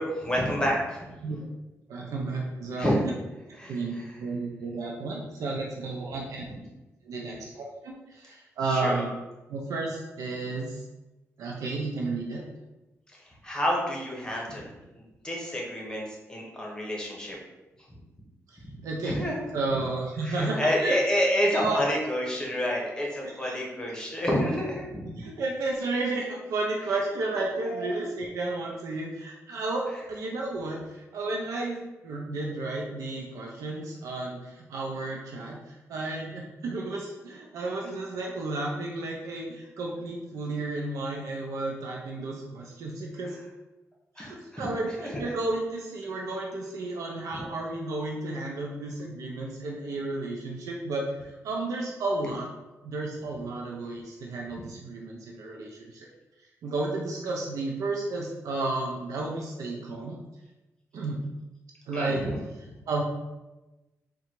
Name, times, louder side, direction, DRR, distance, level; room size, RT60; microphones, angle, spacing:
voice 1, 0.0-1.1 2.8-3.0 3.6-4.1 8.6-9.0 13.1-17.4 17.9-18.0 19.0-19.4 20.2-25.1 27.6-28.1 44.2-44.6 45.0-45.3 61.9-62.3, equal, 15° left, -2 dB, 1.0 m, -29 dB
voice 2, 1.9-2.9 3.7-6.4 7.0-9.2 9.5-10.8 11.4-12.4 18.5-19.1 19.5-21.0 21.5-21.8 23.2-23.6 25.2-43.4 44.2-52.5 52.8-56.1 56.6-60.2 60.9-61.2 61.9-62.2 62.9-63.0, right 2 dB, 80° right, -1 dB, 0.5 m, -32 dB
3.8 x 2.3 x 4.5 m, 1.1 s
cardioid pair, 100°, 6 cm